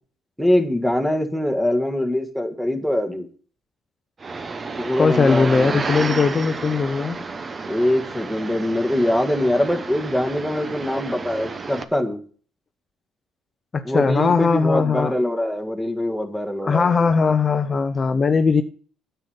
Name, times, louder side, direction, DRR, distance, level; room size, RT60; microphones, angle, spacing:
voice 1, 0.4-3.3 4.8-5.8 7.7-12.2 13.8-16.9, left 1 dB, ahead, 6 dB, 1.6 m, -23 dB
sound 1, 4.2-11.8, right 4 dB, 30° right, 0.9 m, -31 dB
voice 2, 5.0-7.2 13.7-15.1 16.6-18.6, left 5 dB, 35° left, 7 dB, 0.7 m, -19 dB
9.7 x 6.9 x 7.0 m, 0.43 s
cardioid pair, 95°, 0 cm